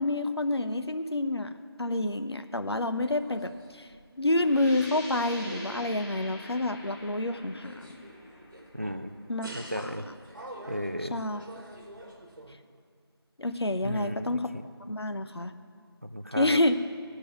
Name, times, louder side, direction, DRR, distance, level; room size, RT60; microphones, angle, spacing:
voice 1, 0.0-1.5 1.8-3.9 4.2-7.9 9.3-9.5 9.7-9.9 11.1-11.4 13.4-14.5 14.9-15.5 16.4-16.8, left 2 dB, 75° left, 8 dB, 0.8 m, -28 dB
sound 1, 3.0-4.1 4.4-5.2 5.4-7.0 7.5-9.0 9.4-12.5, right 1 dB, 50° right, 1.5 m, -46 dB
sound 2, 4.4-9.9, left 1 dB, 45° left, 2.8 m, -45 dB
voice 2, 8.7-9.1 9.5-10.1 10.7-11.2 13.8-14.4 16.0-16.6, equal, 35° right, 8 dB, 0.4 m, -34 dB
14.0 x 5.4 x 8.3 m, 2.2 s
figure-of-eight pair, 170°, 14 cm